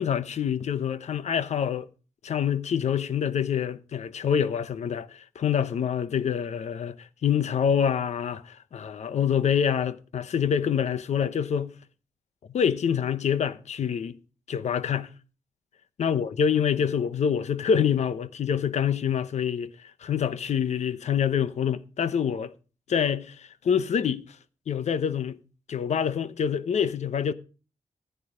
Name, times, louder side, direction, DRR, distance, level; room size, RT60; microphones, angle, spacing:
voice 1, 0.0-1.9 2.2-11.7 12.5-14.2 14.5-15.1 16.0-19.7 20.0-22.5 22.9-24.2 24.7-25.4 25.7-27.3, left 8 dB, 80° left, 0.9 m, -26 dB
15.0 x 9.2 x 5.1 m
wide cardioid pair, 165°, 12 cm